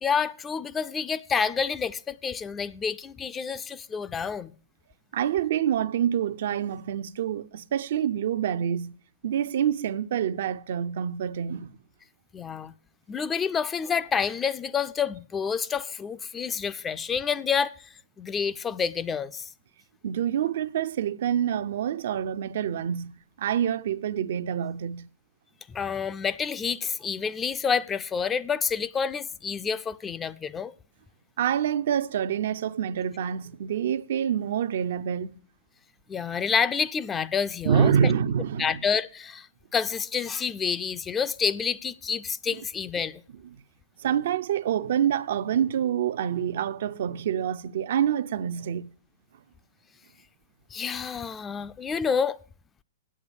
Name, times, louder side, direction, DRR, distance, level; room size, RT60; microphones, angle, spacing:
voice 1, 0.0-4.5 12.3-12.7 13.1-17.7 18.2-19.5 25.7-30.7 36.1-38.1 38.6-39.5 39.7-43.2 50.7-52.4, left 6 dB, 20° left, 0.4 m, -28 dB
voice 2, 5.1-8.9 9.2-11.7 20.0-23.1 23.4-25.1 31.4-35.4 37.6-38.8 44.0-48.9, right 9 dB, 60° right, 0.6 m, -26 dB
8.6 x 7.9 x 7.0 m
hypercardioid pair, 115°, 0 cm